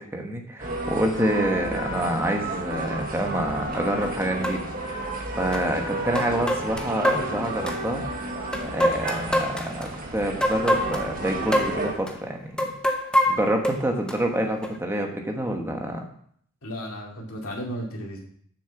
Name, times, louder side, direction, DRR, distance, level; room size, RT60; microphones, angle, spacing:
voice 1, 0.0-8.0 8.6-12.7 13.3-16.0, right 1 dB, 10° right, 2 dB, 1.2 m, -27 dB
sound 1, 0.6-11.9, right 1 dB, 45° right, 1.4 m, -32 dB
sound 2, 3.7-3.8 4.4-4.6 5.5-5.6 6.2-7.8 8.5-9.9 10.4-11.1 11.5-11.8 12.1-12.2 12.6-14.1 14.6-14.8, equal, 5° left, 0.7 m, -24 dB
voice 2, 16.6-18.2, equal, 85° left, -1 dB, 2.4 m, -34 dB
7.0 x 6.4 x 7.1 m, 0.63 s
head